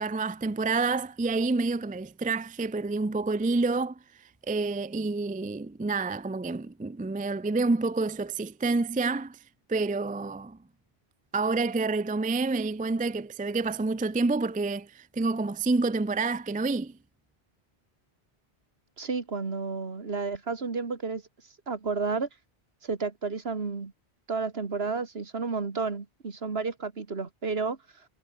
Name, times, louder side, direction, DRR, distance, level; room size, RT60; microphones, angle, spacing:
voice 1, 0.0-4.0 4.5-9.4 9.7-10.6 11.3-16.9, right 3 dB, 15° right, 0.3 m, -28 dB
voice 2, 19.0-21.2 21.7-22.3 22.8-23.9 24.3-27.8, right 4 dB, 70° right, 2.2 m, -31 dB
omnidirectional pair, 1.1 m